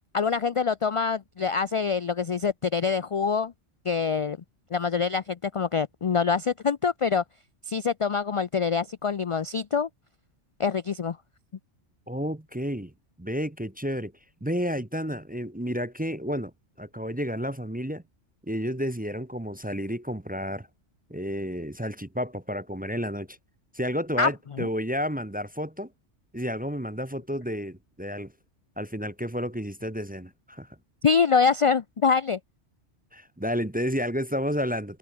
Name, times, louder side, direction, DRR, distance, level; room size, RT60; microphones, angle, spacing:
voice 1, 0.1-3.5 3.9-4.4 4.7-7.2 7.7-9.9 10.6-11.2 24.2-24.3 24.6-24.7 31.0-32.4, left 5 dB, 50° left, 0.3 m, -25 dB
voice 2, 12.1-12.9 13.2-14.1 14.4-16.5 16.8-18.0 18.4-20.7 21.1-23.4 23.7-25.9 26.3-28.3 28.8-30.7 33.1-35.0, equal, 10° right, 0.7 m, -31 dB
omnidirectional pair, 1.2 m